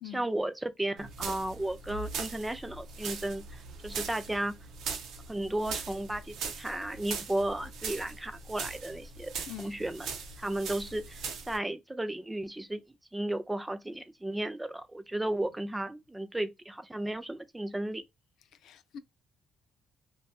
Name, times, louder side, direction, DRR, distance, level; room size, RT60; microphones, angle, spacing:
voice 1, 0.0-3.4 3.8-4.6 5.3-11.2 11.5-12.8 13.1-18.0, right 1 dB, 10° right, 0.4 m, -34 dB
sound 1, 1.0-11.6, right 5 dB, 80° right, 0.7 m, -40 dB
voice 2, 18.6-19.0, left 11 dB, 80° left, 0.3 m, -43 dB
2.6 x 2.3 x 2.2 m
cardioid pair, 145°, 0 cm